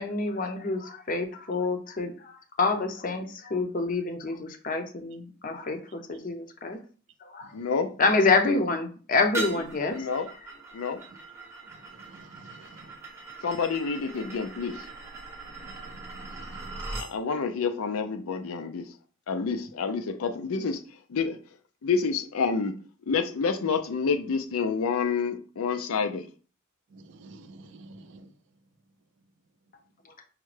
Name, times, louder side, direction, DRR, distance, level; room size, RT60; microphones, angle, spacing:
voice 1, 0.0-2.3 2.6-6.8 7.2-7.5 8.0-10.0, left 3 dB, 40° left, 0.5 m, -27 dB
voice 2, 7.5-7.9 9.9-10.3 10.7-11.0 13.4-14.8 17.0-18.9 19.3-20.8 21.1-21.4 21.8-22.7 23.1-26.3, left 5 dB, 85° left, 0.5 m, -28 dB
sound 1, 9.3-17.1, right 2 dB, 15° right, 0.7 m, -40 dB
voice 3, 11.8-13.0 15.5-16.8 26.9-28.3, right 2 dB, 60° right, 0.4 m, -50 dB
4.8 x 2.1 x 3.2 m
head